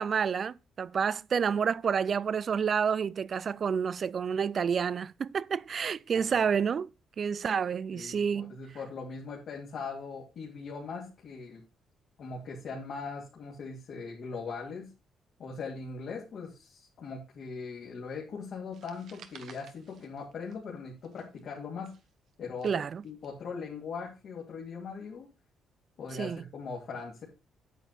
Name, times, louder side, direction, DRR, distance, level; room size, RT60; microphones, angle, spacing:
voice 1, 0.0-6.9 7.2-8.6 22.6-23.0 26.1-26.4, right 6 dB, 50° right, 0.4 m, -29 dB
voice 2, 7.9-11.6 12.2-14.9 15.4-21.9 22.4-22.7 23.0-25.3 26.0-27.2, left 4 dB, 65° left, 2.6 m, -40 dB
sound 1, 18.7-20.8 21.0-23.3, right 8 dB, 70° right, 1.1 m, -54 dB
9.1 x 8.0 x 4.2 m
cardioid pair, 90°, 0 cm